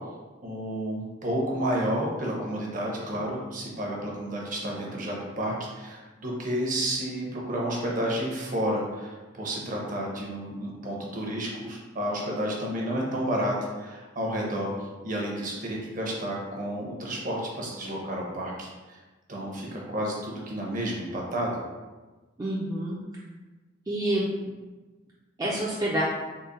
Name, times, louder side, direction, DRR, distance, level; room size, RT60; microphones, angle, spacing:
voice 1, 0.4-14.7 15.0-19.0 19.3-21.6, right 1 dB, 45° right, -2 dB, 0.8 m, -31 dB
voice 2, 22.4-23.0 23.9-24.3 25.4-26.0, right 1 dB, 20° right, -6 dB, 0.4 m, -27 dB
3.9 x 2.1 x 3.8 m, 1.3 s
head